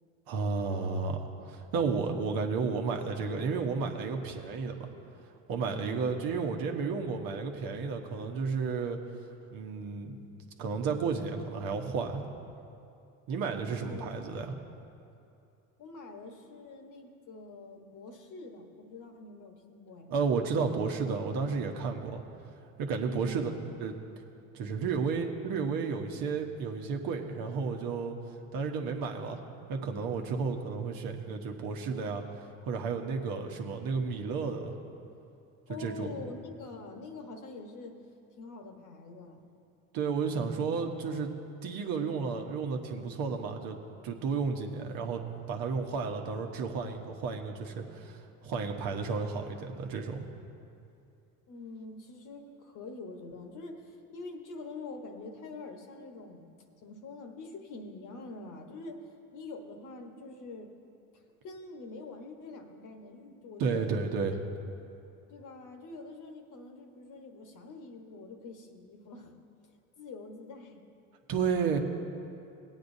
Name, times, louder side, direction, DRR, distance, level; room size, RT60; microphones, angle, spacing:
voice 1, 0.3-4.9 5.5-9.0 9.5-10.2 10.6-12.2 13.3-14.5 20.1-22.2 22.8-23.5 23.8-24.0 24.5-28.2 28.5-29.4 29.7-32.2 32.6-34.7 35.7-36.1 39.9-41.3 41.6-43.8 44.0-45.2 45.5-50.3 63.6-64.4 71.3-71.8, right 5 dB, 60° right, 3 dB, 1.2 m, -32 dB
voice 2, 5.7-6.2 13.8-14.3 15.8-20.1 23.0-23.5 35.7-38.0 38.4-39.5 51.5-56.5 56.8-59.1 59.3-60.7 61.1-63.9 65.3-69.3 70.0-70.8, left 3 dB, 50° left, 4 dB, 1.3 m, -45 dB
17.0 x 9.3 x 2.7 m, 2.6 s
hypercardioid pair, 80°, 40 cm